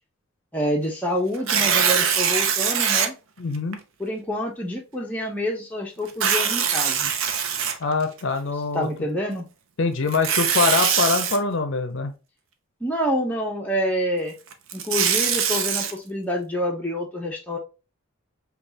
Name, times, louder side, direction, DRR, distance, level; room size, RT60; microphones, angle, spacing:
voice 1, 0.5-3.1 4.0-7.1 8.7-9.5 12.8-14.3 14.7-17.6, equal, 5° left, -1 dB, 0.7 m, -27 dB
Tearing, 1.3-3.1 3.7-3.8 6.1-8.2 10.1-11.4 14.5-15.9, right 7 dB, 70° right, 0.6 m, -22 dB
voice 2, 3.4-3.8 7.8-8.9 9.8-12.1, left 4 dB, 60° left, 8 dB, 0.5 m, -24 dB
5.1 x 2.4 x 2.7 m, 0.30 s
head